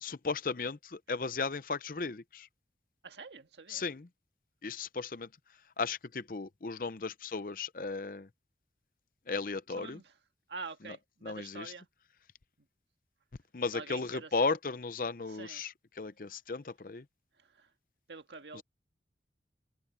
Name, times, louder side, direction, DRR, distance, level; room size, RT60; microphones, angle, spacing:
voice 1, 0.0-2.5 3.7-4.1 4.6-5.3 5.8-8.3 9.3-10.0 10.8-11.0 11.2-11.7 13.5-17.0 18.5-18.6, left 4 dB, 50° left, 0.6 m, -35 dB
voice 2, 3.0-3.8 9.8-10.1 10.5-11.9 13.7-14.3 15.3-15.6 18.1-18.6, right 4 dB, 80° right, 1.7 m, -46 dB
head